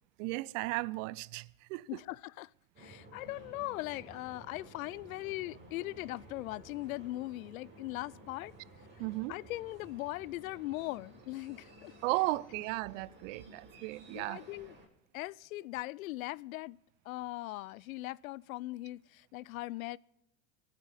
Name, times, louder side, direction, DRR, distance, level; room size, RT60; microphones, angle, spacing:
voice 1, 0.2-1.8 9.0-9.3 12.0-14.4, right 21 dB, 65° right, 0.7 m, -35 dB
voice 2, 1.9-2.5 2.8-8.5 9.3-11.9 14.1-14.7 15.1-16.8 17.1-20.0, left 18 dB, 80° left, 0.5 m, -40 dB
sound 1, 2.7-14.9, right 1 dB, 25° right, 6.7 m, -55 dB
25.0 x 9.6 x 4.1 m
hypercardioid pair, 90°, 41 cm